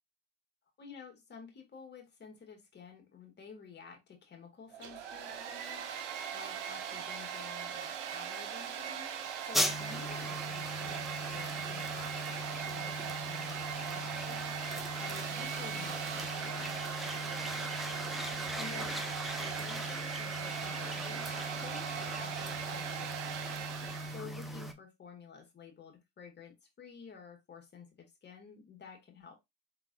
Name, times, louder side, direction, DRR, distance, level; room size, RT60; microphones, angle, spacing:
voice 1, 0.8-17.9 18.5-23.7 24.1-29.4, left 5 dB, 30° left, 1.9 m, -51 dB
Domestic sounds home sounds, 4.7-24.3, right 8 dB, 75° right, 0.9 m, -40 dB
sound 1, 9.5-24.7, equal, ahead, 0.7 m, -39 dB
4.9 x 3.9 x 2.4 m
hypercardioid pair, 75°, 35 cm